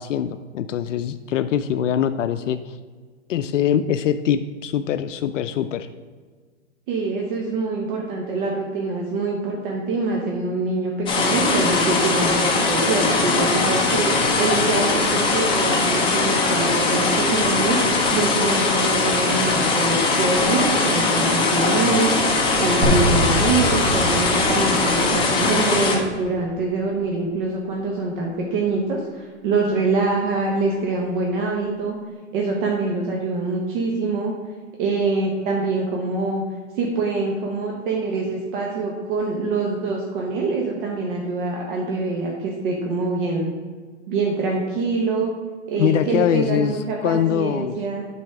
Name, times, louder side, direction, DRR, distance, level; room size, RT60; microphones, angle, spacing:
voice 1, 0.0-2.8 3.3-5.9 45.8-47.8, left 9 dB, 80° left, 10 dB, 0.5 m, -23 dB
voice 2, 6.9-17.8 18.1-22.1 22.6-32.0 32.3-34.3 34.8-36.4 36.8-43.5 44.1-45.3 45.7-48.0, right 3 dB, 45° right, -1 dB, 1.3 m, -24 dB
sound 1, 11.1-26.0, left 3 dB, 15° left, 1.0 m, -20 dB
sound 2, 22.8-26.9, left 1 dB, 20° right, 2.1 m, -26 dB
8.5 x 4.1 x 5.8 m, 1.5 s
hypercardioid pair, 145°, 37 cm